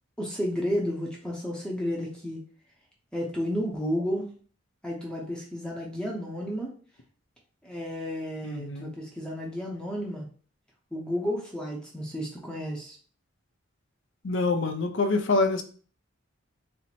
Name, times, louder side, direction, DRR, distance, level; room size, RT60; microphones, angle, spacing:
voice 1, 0.2-2.4 3.1-4.3 4.8-6.7 7.6-10.3 10.9-13.0, equal, 5° left, -2 dB, 0.7 m, -32 dB
voice 2, 8.4-8.9 14.2-15.6, left 3 dB, 65° left, 5 dB, 0.6 m, -26 dB
4.3 x 2.1 x 4.1 m, 0.42 s
head